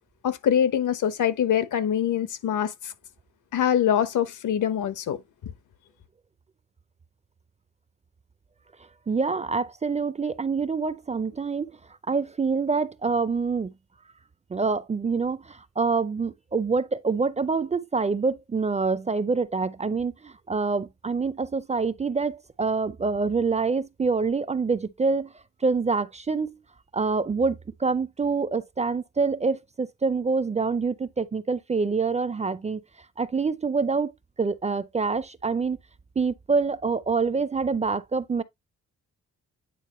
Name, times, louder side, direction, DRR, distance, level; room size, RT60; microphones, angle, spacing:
voice 1, 0.2-2.9 3.5-5.2 5.4-5.5, left 9 dB, 75° left, 1.1 m, -24 dB
voice 2, 9.1-11.7 12.1-13.7 14.5-25.3 25.6-26.5 26.9-32.8 33.2-34.1 34.4-35.8 36.2-38.4, right 4 dB, 20° right, 0.4 m, -26 dB
9.3 x 4.5 x 3.0 m
cardioid pair, 130°, 31 cm